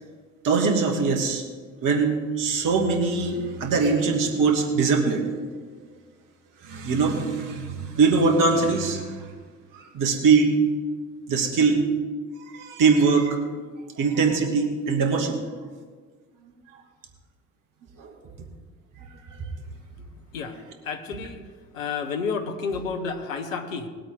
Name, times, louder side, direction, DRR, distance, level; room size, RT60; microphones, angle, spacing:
voice 1, 0.4-1.4 1.8-5.6 6.6-9.2 9.7-10.6 11.3-11.8 12.4-13.4 14.0-15.4 18.0-18.1 19.3-19.4, right 4 dB, 55° right, 3 dB, 2.6 m, -22 dB
voice 2, 20.8-21.4 21.7-23.9, left 5 dB, 85° left, 7 dB, 1.1 m, -30 dB
20.5 x 8.3 x 3.8 m, 1.5 s
hypercardioid pair, 55°, 39 cm